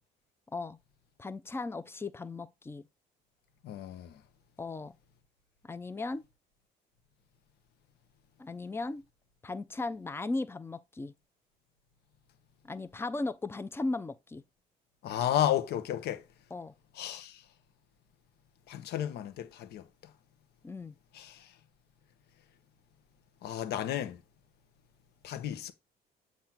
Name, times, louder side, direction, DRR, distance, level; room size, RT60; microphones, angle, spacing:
voice 1, 1.2-2.9 4.6-5.0 5.6-6.2 8.4-9.0 9.4-11.1 12.6-14.4 16.5-16.7 20.6-20.9, left 3 dB, 15° left, 0.5 m, -36 dB
voice 2, 3.6-4.1 15.0-16.2 17.0-17.3 18.7-19.8 21.2-21.4 23.4-24.2 25.2-25.7, left 11 dB, 75° left, 0.9 m, -32 dB
7.4 x 2.7 x 5.9 m
cardioid pair, 110°, 17 cm